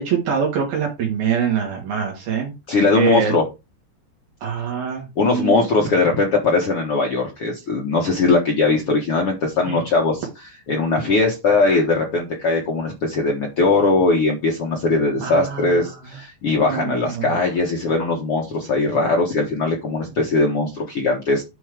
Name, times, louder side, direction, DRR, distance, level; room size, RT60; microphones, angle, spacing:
voice 1, 0.0-2.5 2.9-3.3 4.4-5.7 9.7-9.8 15.2-16.0 16.6-17.3, right 7 dB, 65° right, -1 dB, 3.5 m, -24 dB
voice 2, 2.7-3.4 5.2-10.3 10.7-21.4, left 3 dB, 85° left, 0 dB, 1.2 m, -20 dB
9.9 x 4.6 x 4.9 m, 0.25 s
omnidirectional pair, 4.9 m